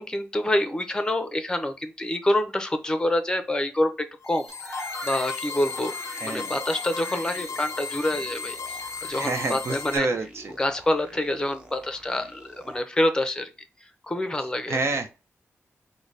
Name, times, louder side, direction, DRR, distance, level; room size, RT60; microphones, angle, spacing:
voice 1, 0.0-5.9 6.2-10.1 10.6-13.5 14.0-14.8, left 1 dB, 15° left, 0.6 m, -27 dB
sound 1, 4.2-10.0, left 5 dB, 70° left, 0.4 m, -35 dB
sound 2, 4.5-12.8, right 1 dB, 20° right, 0.8 m, -43 dB
voice 2, 6.2-6.6 9.2-10.5 14.7-15.1, right 3 dB, 55° right, 0.6 m, -28 dB
3.9 x 2.1 x 3.2 m
wide cardioid pair, 100°, 5 cm